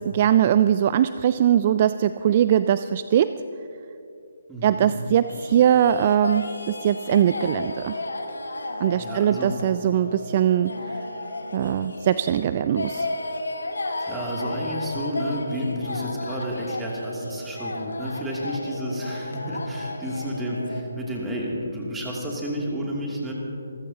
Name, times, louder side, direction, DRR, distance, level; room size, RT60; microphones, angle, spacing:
voice 1, 0.0-3.4 4.6-8.0 8.8-10.7 11.5-13.1, right 10 dB, 35° right, 13 dB, 0.3 m, -21 dB
voice 2, 4.5-4.9 8.9-9.5 14.0-23.3, equal, 10° right, -4 dB, 2.7 m, -31 dB
sound 1, 5.3-20.8, left 2 dB, 75° left, 1.5 m, -33 dB
27.5 x 14.5 x 2.9 m, 2.8 s
figure-of-eight pair, 145°, 0 cm